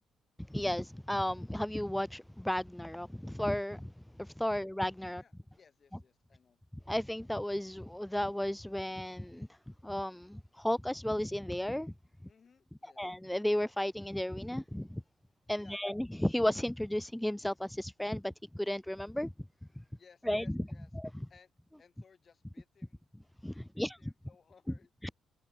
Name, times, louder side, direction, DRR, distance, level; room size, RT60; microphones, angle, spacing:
voice 1, 0.5-3.9 4.2-5.2 6.9-9.6 9.8-11.9 13.0-15.0 15.5-19.3 20.3-20.6 21.0-21.1 23.4-24.1, left 1 dB, 5° left, 0.7 m, -34 dB
voice 2, 5.2-6.6 12.3-13.0 15.6-15.9 20.0-20.9 21.3-21.5 21.8-23.1 23.6-24.9, left 6 dB, 40° left, 7.4 m, -62 dB
cardioid pair, 90°, 0 cm